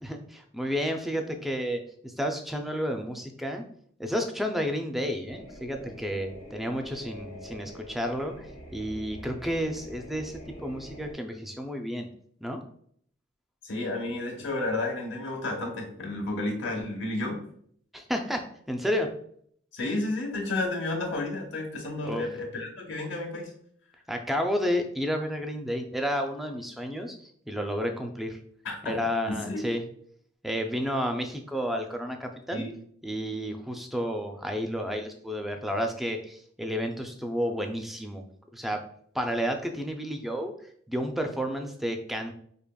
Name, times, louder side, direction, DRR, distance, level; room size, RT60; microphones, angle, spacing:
voice 1, 0.0-3.6 4.0-12.1 12.4-12.6 17.9-19.1 22.0-22.2 24.1-28.4 28.8-29.8 30.4-32.6 33.0-38.2 38.5-38.8 39.1-40.5 40.9-42.3, equal, ahead, 4 dB, 0.3 m, -31 dB
sound 1, 5.3-11.1, equal, 90° left, 1.4 m, -45 dB
voice 2, 13.6-17.4 19.7-23.5 28.6-28.9 29.3-29.6 32.5-32.7, left 2 dB, 65° left, 1 dB, 1.0 m, -31 dB
4.9 x 2.9 x 2.2 m, 0.63 s
head